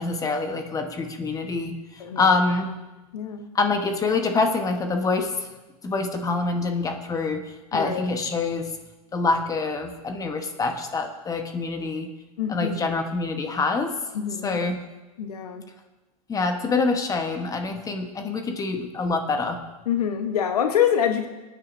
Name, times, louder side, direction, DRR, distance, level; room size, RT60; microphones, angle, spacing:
voice 1, 0.0-2.7 3.5-5.5 5.8-8.7 9.1-12.1 12.5-13.9 14.4-14.8 16.3-19.6, left 3 dB, 15° left, 5 dB, 1.1 m, -26 dB
voice 2, 3.1-3.5 7.7-8.0 12.4-12.8 14.1-14.6 15.2-15.6 19.9-21.3, left 9 dB, 80° left, 6 dB, 1.0 m, -25 dB
21.5 x 9.3 x 2.6 m, 1.1 s
hypercardioid pair, 120°, 20 cm